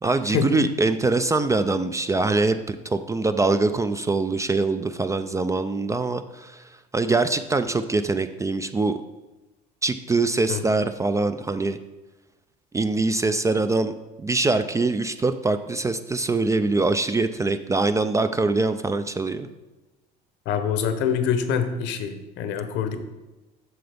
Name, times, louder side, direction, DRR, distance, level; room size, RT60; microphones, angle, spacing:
voice 1, 0.0-6.6 6.9-9.0 9.8-11.8 12.7-19.5, right 3 dB, 15° right, 10 dB, 0.3 m, -23 dB
voice 2, 20.5-23.0, left 7 dB, 65° left, 9 dB, 0.9 m, -25 dB
7.8 x 5.8 x 3.4 m, 1.1 s
supercardioid pair, 80°, 20 cm